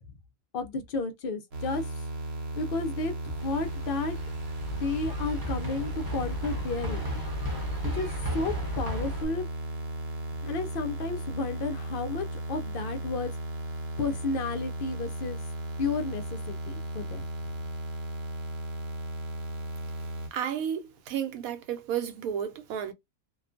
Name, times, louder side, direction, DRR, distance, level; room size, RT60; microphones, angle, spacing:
voice 1, 0.5-1.8 2.6-4.1 4.7-7.2 7.9-9.4 10.4-13.3 14.0-15.4 15.8-17.2, left 3 dB, 70° left, 0.5 m, -32 dB
sound 1, 1.5-20.3, right 1 dB, 55° right, 0.9 m, -36 dB
sound 2, 3.4-9.3, right 1 dB, 25° right, 0.6 m, -35 dB
voice 2, 20.3-22.9, right 9 dB, 80° right, 1.0 m, -32 dB
2.4 x 2.2 x 2.4 m
omnidirectional pair, 1.5 m